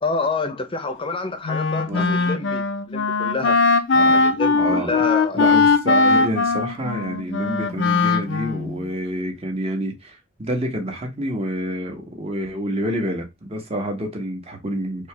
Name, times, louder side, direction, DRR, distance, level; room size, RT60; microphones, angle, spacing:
voice 1, 0.0-3.6 4.1-5.5, left 3 dB, 25° left, 0.7 m, -28 dB
Wind instrument woodwind instrument, 1.4-8.8, left 4 dB, 65° left, 0.5 m, -20 dB
voice 2, 1.7-2.3 3.9-4.3 4.5-5.0 5.3-15.1, right 1 dB, 30° right, 1.2 m, -28 dB
4.4 x 2.9 x 3.4 m
head